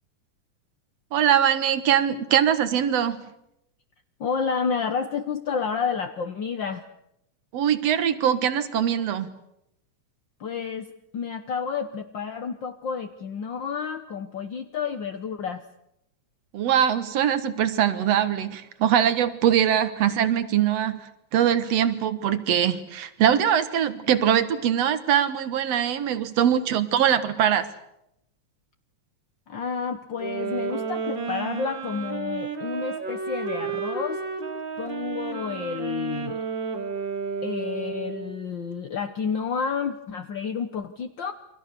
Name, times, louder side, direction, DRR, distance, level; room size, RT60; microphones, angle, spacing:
voice 1, 1.1-3.2 7.5-9.3 16.5-21.0 21.3-27.7, right 9 dB, 60° right, 12 dB, 2.3 m, -22 dB
voice 2, 4.2-6.8 10.4-15.6 29.5-34.2 34.8-36.4 37.4-41.3, left 6 dB, 65° left, 7 dB, 1.1 m, -30 dB
sound 1, 30.2-38.4, right 5 dB, 40° right, 3.0 m, -32 dB
29.0 x 24.0 x 6.8 m, 0.84 s
omnidirectional pair, 3.5 m